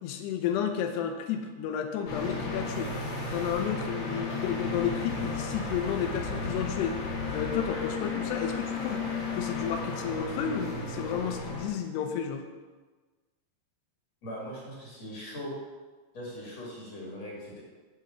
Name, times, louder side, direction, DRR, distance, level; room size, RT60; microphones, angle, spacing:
voice 1, 0.0-2.9 3.3-7.0 7.3-9.0 9.3-12.5, left 8 dB, 85° left, 6 dB, 2.9 m, -32 dB
sound 1, 2.1-11.7, left 3 dB, 60° left, 3.5 m, -34 dB
voice 2, 14.2-15.5 16.1-17.6, equal, 45° left, -4 dB, 2.9 m, -40 dB
7.8 x 5.3 x 7.1 m, 1.3 s
omnidirectional pair, 4.8 m